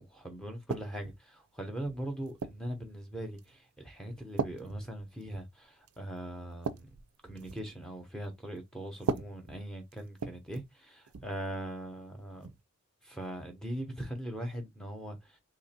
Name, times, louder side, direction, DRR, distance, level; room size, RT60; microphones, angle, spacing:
voice 1, 0.0-6.9 7.2-12.5 13.0-15.4, right 1 dB, 5° left, 0.8 m, -40 dB
sound 1, 0.7-1.2 1.9-2.7 3.4-3.6 4.4-5.6 5.9-6.0 6.4-7.7 8.9-10.8 11.1-11.3 12.4-12.6, right 5 dB, 85° right, 0.5 m, -38 dB
2.9 x 2.6 x 4.2 m
head